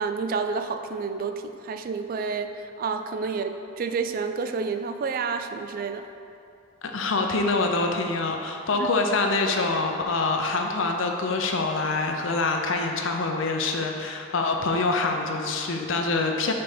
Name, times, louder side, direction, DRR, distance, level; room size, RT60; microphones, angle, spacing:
voice 1, 0.0-6.1 8.8-8.9, right 5 dB, 45° right, 7 dB, 0.3 m, -29 dB
voice 2, 6.8-16.5, left 3 dB, 70° left, 3 dB, 0.6 m, -25 dB
5.2 x 4.3 x 5.5 m, 2.6 s
head